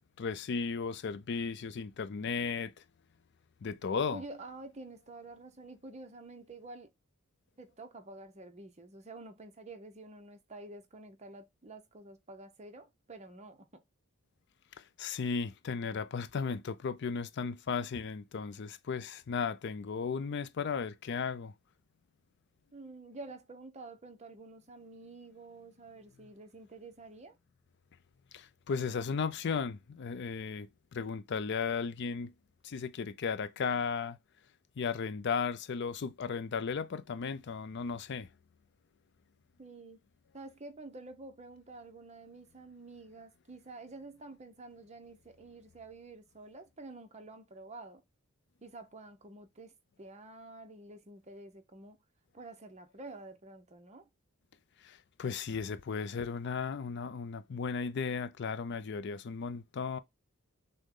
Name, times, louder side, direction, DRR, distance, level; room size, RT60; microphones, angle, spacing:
voice 1, 0.2-2.7 3.6-4.2 14.8-21.5 28.3-32.3 32.6-34.2 34.8-38.3 54.8-60.0, left 5 dB, 55° left, 0.4 m, -35 dB
voice 2, 4.1-6.9 7.6-13.8 22.7-27.4 39.6-40.0 40.3-48.0 48.6-49.7 50.0-52.0 52.3-54.1, right 2 dB, 30° right, 0.7 m, -49 dB
6.3 x 2.2 x 3.7 m
head